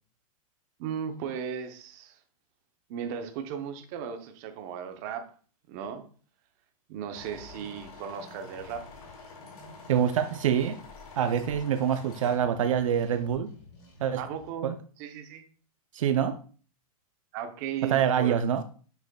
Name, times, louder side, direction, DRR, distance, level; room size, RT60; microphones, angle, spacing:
voice 1, 0.8-2.2 2.9-5.2 5.7-6.0 6.9-8.9 14.2-15.4 17.3-18.4, right 8 dB, 30° right, 6 dB, 0.8 m, -36 dB
sound 1, 7.1-12.4, left 4 dB, 75° left, 2.7 m, -48 dB
sound 2, 7.1-14.5, left 3 dB, 50° left, 3.4 m, -53 dB
voice 2, 9.9-10.8 11.2-13.5 14.0-14.2 14.6-14.8 15.9-16.4 17.8-18.6, right 8 dB, 60° right, 9 dB, 0.5 m, -25 dB
8.0 x 6.3 x 2.3 m, 0.41 s
supercardioid pair, 170°, 19 cm